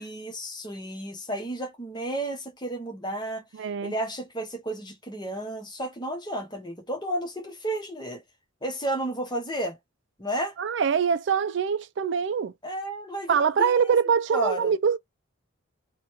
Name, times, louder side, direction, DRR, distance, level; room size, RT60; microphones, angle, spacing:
voice 1, 0.0-3.4 3.8-8.2 8.6-9.8 10.2-10.5 12.6-13.9 14.3-14.7, right 1 dB, 20° left, 0.8 m, -32 dB
voice 2, 3.6-3.9 10.6-12.5 13.3-15.0, right 6 dB, 60° right, 0.3 m, -24 dB
2.8 x 2.2 x 2.9 m
head